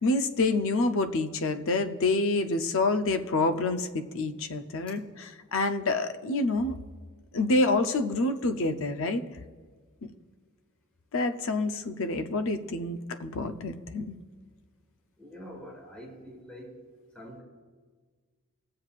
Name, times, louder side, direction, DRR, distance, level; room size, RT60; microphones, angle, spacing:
voice 1, 0.0-5.0 5.5-6.8 7.3-9.2 11.1-14.1, left 2 dB, 65° left, 8 dB, 0.6 m, -27 dB
voice 2, 15.2-16.8 17.1-17.4, equal, 5° left, -2 dB, 1.9 m, -45 dB
21.0 x 7.6 x 2.4 m, 1.5 s
head